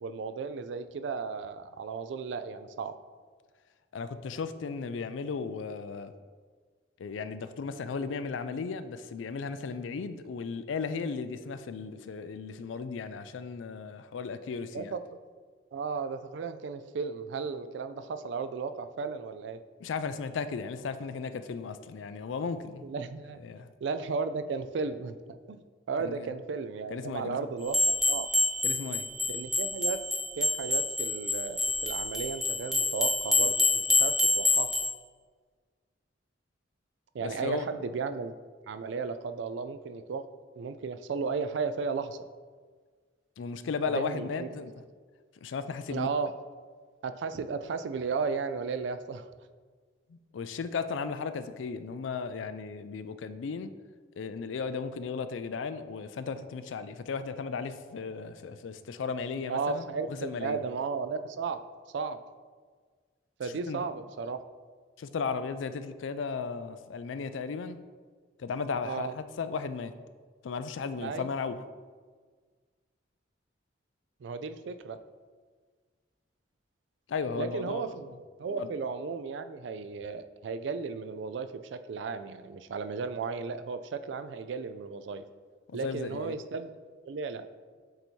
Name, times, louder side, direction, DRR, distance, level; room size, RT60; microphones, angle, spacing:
voice 1, 0.0-2.9 14.7-15.2 15.7-19.6 22.8-23.4 23.8-25.6 25.9-28.3 29.3-30.0 30.4-34.7 37.1-38.4 38.7-40.3 40.6-42.2 43.9-44.5 45.9-46.3 47.0-49.3 59.5-61.6 61.9-62.2 63.4-64.4 68.8-69.1 71.0-71.3 74.2-75.0 77.4-78.1 78.4-85.2 85.7-86.7 87.0-87.5, right 5 dB, 70° right, 11 dB, 0.3 m, -34 dB
voice 2, 3.9-6.1 7.0-14.9 19.8-22.9 23.4-23.7 26.0-26.3 26.9-27.5 28.6-29.1 37.2-37.7 43.4-44.7 45.4-46.1 50.1-53.7 54.2-59.9 60.2-60.6 63.4-63.9 65.0-67.8 68.4-69.9 70.4-71.6 77.1-77.9 78.6-78.7 85.7-86.4, left 5 dB, 85° left, 12 dB, 0.4 m, -35 dB
sound 1, 27.7-34.9, left 2 dB, ahead, 0.5 m, -27 dB
7.7 x 2.7 x 4.5 m, 1.5 s
head